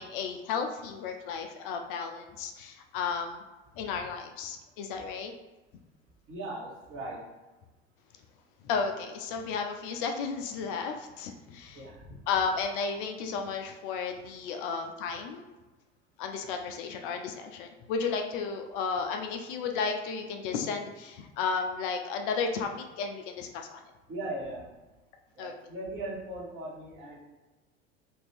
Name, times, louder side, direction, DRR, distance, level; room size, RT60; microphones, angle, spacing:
voice 1, 0.0-3.4 3.8-5.3 8.6-11.8 12.3-15.4 16.2-23.8 25.4-25.5, left 5 dB, 55° left, 4 dB, 0.5 m, -33 dB
voice 2, 6.3-7.2 11.7-12.2 24.1-24.7 25.3-27.2, right 1 dB, 40° right, -3 dB, 1.1 m, -38 dB
2.8 x 2.6 x 3.3 m, 1.1 s
figure-of-eight pair, 75°, 32 cm